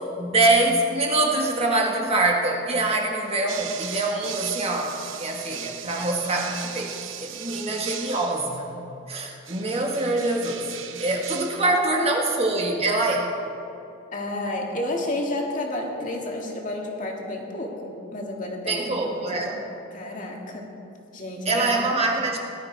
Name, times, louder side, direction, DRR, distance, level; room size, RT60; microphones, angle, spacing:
voice 1, 0.2-6.9 7.2-8.7 9.1-10.6 11.0-13.3 18.6-19.6 21.4-22.4, right 2 dB, 30° right, 0 dB, 1.5 m, -24 dB
sound 1, 3.5-8.6 9.5-11.8, right 9 dB, 70° right, 0.8 m, -37 dB
voice 2, 11.6-12.1 14.1-19.5 19.9-20.8 21.1-21.7, left 1 dB, 40° left, 0 dB, 2.0 m, -31 dB
18.5 x 12.0 x 4.6 m, 2.8 s
head